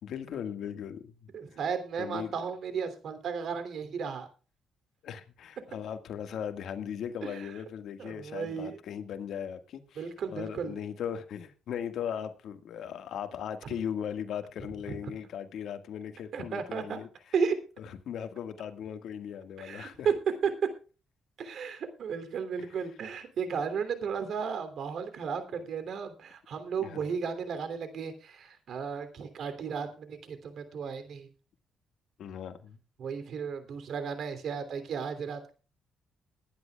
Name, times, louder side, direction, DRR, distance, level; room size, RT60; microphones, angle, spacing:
voice 1, 0.0-1.1 2.0-2.4 5.0-17.1 17.8-20.1 26.8-27.0 32.2-32.8, left 8 dB, 70° left, 1.7 m, -38 dB
voice 2, 1.3-4.3 7.2-7.5 8.0-8.8 9.9-10.8 13.6-13.7 14.9-15.0 16.3-17.0 17.3-17.5 19.6-20.1 20.4-20.5 21.4-31.3 33.0-35.5, right 6 dB, 65° right, 3.0 m, -34 dB
21.5 x 10.5 x 2.3 m
cardioid pair, 90°, 0 cm